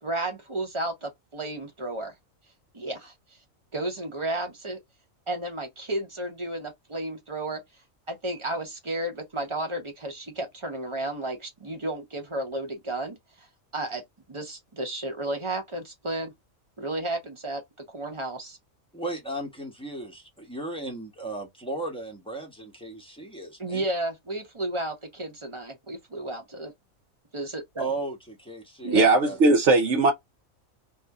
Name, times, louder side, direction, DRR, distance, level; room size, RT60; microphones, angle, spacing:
voice 1, 0.0-2.1 2.7-3.1 3.7-4.8 5.3-7.6 8.1-13.5 13.7-14.0 14.3-16.3 16.8-17.6 17.9-18.6 23.6-26.7 27.3-27.9 28.8-29.1, right 1 dB, 25° right, 0.8 m, -32 dB
voice 2, 18.9-23.8 27.8-29.0 29.2-29.4, right 2 dB, 5° left, 0.9 m, -35 dB
voice 3, 28.9-30.1, right 3 dB, 65° right, 0.9 m, -19 dB
2.7 x 2.6 x 3.4 m
omnidirectional pair, 1.4 m